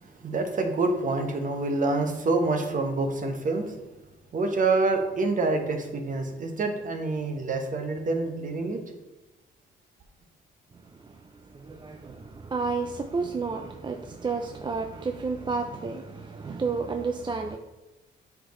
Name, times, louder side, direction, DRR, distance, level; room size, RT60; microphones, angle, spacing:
voice 1, 0.0-3.8 4.3-8.8, right 3 dB, 40° right, 4 dB, 1.1 m, -27 dB
voice 2, 10.9-17.6, right 4 dB, 25° right, 5 dB, 0.4 m, -31 dB
7.7 x 4.7 x 3.1 m, 1.1 s
cardioid pair, 90°, 20 cm